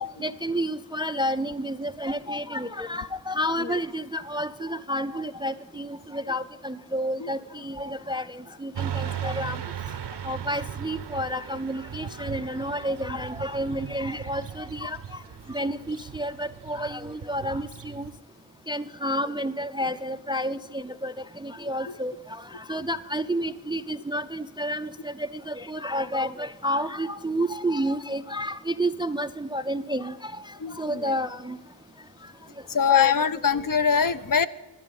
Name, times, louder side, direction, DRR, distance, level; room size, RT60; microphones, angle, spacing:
voice 1, 0.2-9.6 10.2-15.2 15.5-18.1 18.7-30.3 30.8-31.6 32.9-33.1, equal, 10° right, 13 dB, 0.3 m, -30 dB
Motorcycle / Traffic noise roadway noise, 8.7-18.1, right 9 dB, 70° right, 0.7 m, -37 dB
voice 2, 30.6-31.1 32.7-34.5, left 7 dB, 50° left, 13 dB, 0.5 m, -23 dB
12.5 x 10.5 x 5.3 m, 1.2 s
wide cardioid pair, 70°, 43 cm